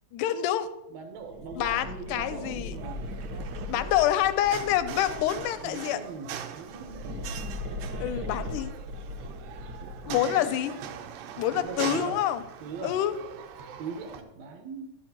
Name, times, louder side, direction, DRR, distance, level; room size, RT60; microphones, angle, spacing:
voice 1, 0.1-0.7 1.6-2.7 3.7-6.0 8.0-8.7 10.1-10.7 11.4-12.4 12.8-13.1, left 12 dB, 80° left, 12 dB, 2.0 m, -27 dB
voice 2, 0.9-3.0 5.6-7.4 9.8-10.5 11.5-12.2 12.6-13.0 13.8-15.0, right 4 dB, 60° right, 4 dB, 2.2 m, -40 dB
sound 1, 1.2-5.7 6.6-10.3, left 1 dB, 40° right, 2.0 m, -38 dB
sound 2, 2.7-14.2, right 8 dB, 85° right, 2.5 m, -41 dB
12.5 x 10.0 x 2.9 m, 0.92 s
omnidirectional pair, 3.9 m